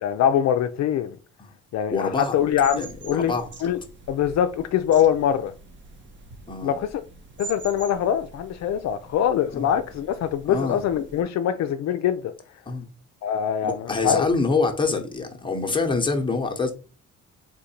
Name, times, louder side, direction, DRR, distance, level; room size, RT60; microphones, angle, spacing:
voice 1, 0.0-1.2 1.7-3.3 3.6-3.8 4.1-5.5 6.6-7.0 7.4-12.3 13.2-14.3, left 9 dB, 65° left, 0.4 m, -23 dB
voice 2, 1.9-2.4 2.8-3.5 6.5-6.8 9.5-9.7 10.5-10.8 12.7-12.9 13.6-16.7, left 4 dB, 15° left, 1.0 m, -25 dB
sound 1, 2.3-11.2, right 3 dB, 40° right, 1.0 m, -44 dB
3.8 x 2.5 x 4.3 m
cardioid pair, 90°, 30 cm